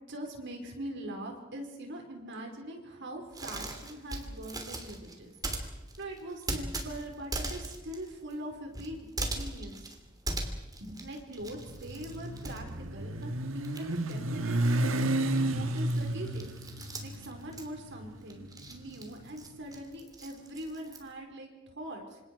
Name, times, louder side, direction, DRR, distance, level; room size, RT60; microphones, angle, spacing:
voice 1, 0.1-5.3 6.0-9.9 10.8-16.5 17.0-22.2, right 1 dB, 60° right, 3 dB, 4.8 m, -42 dB
sound 1, 3.3-13.3 13.6-21.1, right 2 dB, 20° right, 2.9 m, -40 dB
Motorcycle, 11.4-19.6, right 1 dB, 80° right, 1.6 m, -32 dB
28.0 x 26.5 x 4.8 m, 1.1 s
head